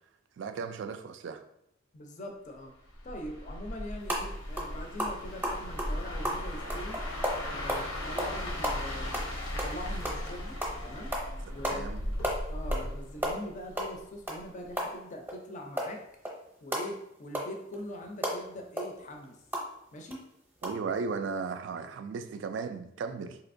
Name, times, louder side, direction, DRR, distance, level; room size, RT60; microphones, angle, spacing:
voice 1, 0.4-1.4 11.5-12.0 20.6-23.4, right 5 dB, 65° right, 8 dB, 0.3 m, -36 dB
voice 2, 1.9-2.7 3.0-7.0 7.4-9.2 9.5-11.1 11.5-11.9 12.5-16.0 16.6-19.4 19.9-20.2, equal, 40° left, 2 dB, 0.5 m, -42 dB
sound 1, 2.9-14.0 14.4-14.6, left 1 dB, 90° left, 0.8 m, -37 dB
sound 2, 4.0-4.2 4.6-4.7 5.0-7.8 8.2-8.4 8.6-10.3 10.6-10.8 11.1-11.3 11.6-11.8 12.0-12.9 13.1-15.4 15.8-19.7 20.1-20.2 20.6-20.7, equal, 10° right, 0.7 m, -33 dB
4.1 x 2.8 x 2.5 m, 0.77 s
head